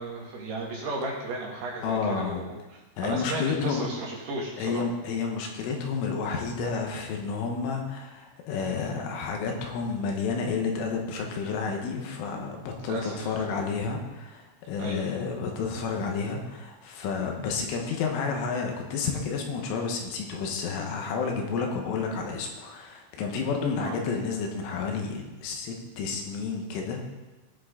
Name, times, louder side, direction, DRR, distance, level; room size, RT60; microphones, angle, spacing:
voice 1, 0.0-4.8 12.8-13.4 14.8-15.1 23.8-23.9, right 2 dB, 60° right, -3 dB, 3.7 m, -34 dB
voice 2, 1.8-2.4 3.0-3.9 4.6-27.0, left 5 dB, 80° left, 2 dB, 3.7 m, -30 dB
18.0 x 6.2 x 3.9 m, 1.2 s
omnidirectional pair, 5.7 m